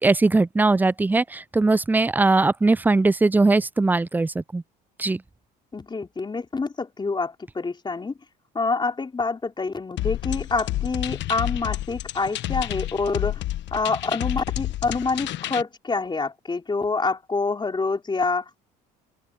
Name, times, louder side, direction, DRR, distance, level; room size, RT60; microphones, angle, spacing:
voice 1, 0.0-4.6 5.0-5.2, right 3 dB, 10° right, 0.4 m, -20 dB
voice 2, 5.7-8.1 8.5-13.4 13.7-18.6, left 4 dB, 25° left, 3.6 m, -27 dB
sound 1, 10.0-15.6, left 14 dB, 65° left, 1.1 m, -29 dB
open air
supercardioid pair, 90°, 20 cm